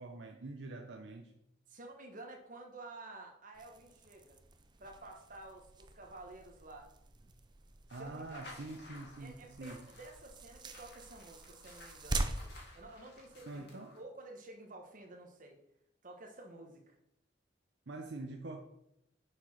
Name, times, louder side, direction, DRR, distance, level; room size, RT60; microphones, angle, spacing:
voice 1, 0.0-1.3 7.9-9.8 13.4-14.0 17.9-18.6, right 2 dB, 65° right, 3 dB, 0.7 m, -45 dB
voice 2, 1.7-4.4 4.8-6.9 8.0-8.6 9.2-12.3 12.7-13.7 13.9-15.6 16.0-17.0, right 2 dB, 45° right, 2 dB, 1.3 m, -51 dB
sound 1, 3.5-13.7, right 2 dB, 25° right, 0.5 m, -44 dB
sound 2, 7.9-14.0, left 2 dB, 60° left, 2.2 m, -56 dB
6.4 x 4.9 x 5.7 m, 0.79 s
head